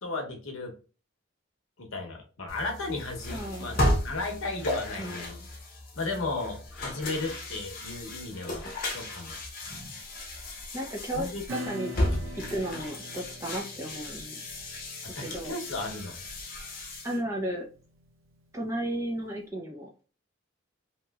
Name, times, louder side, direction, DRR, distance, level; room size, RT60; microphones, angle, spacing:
voice 1, 0.0-0.8 1.8-3.8 4.0-5.3 5.9-10.0 11.1-11.4 11.8-12.3 15.0-16.2, left 3 dB, 90° left, 2 dB, 0.8 m, -35 dB
sound 1, 2.5-17.2, left 1 dB, 45° left, 0.9 m, -34 dB
voice 2, 3.3-3.9 5.0-5.5 10.7-11.9 12.4-14.4 15.2-15.5 17.0-17.6 18.5-19.9, right 1 dB, 15° right, -1 dB, 0.6 m, -34 dB
Acoustic guitar / Strum, 11.5-18.7, right 1 dB, 80° right, 0.6 m, -44 dB
3.0 x 2.9 x 2.3 m, 0.36 s
head